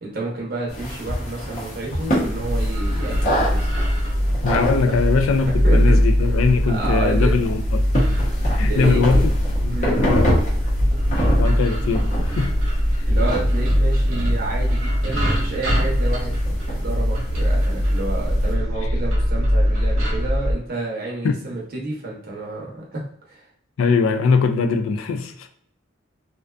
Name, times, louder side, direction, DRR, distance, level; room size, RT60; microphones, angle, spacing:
voice 1, 0.0-3.7 4.9-5.0 5.5-6.0 6.7-7.3 8.7-9.0 9.7-10.0 13.1-16.4 16.7-23.5, right 2 dB, 50° right, -3 dB, 0.7 m, -30 dB
sound 1, 0.7-18.5, equal, 40° left, 0.7 m, -27 dB
sound 2, 2.2-20.5, equal, 85° right, 0.9 m, -21 dB
voice 2, 4.4-7.9 8.5-9.3 9.6-10.4 11.4-12.6 12.9-13.0 18.8-18.9 21.2-21.3 23.8-25.5, left 4 dB, 90° left, 7 dB, 0.4 m, -21 dB
2.5 x 2.2 x 2.3 m, 0.66 s
head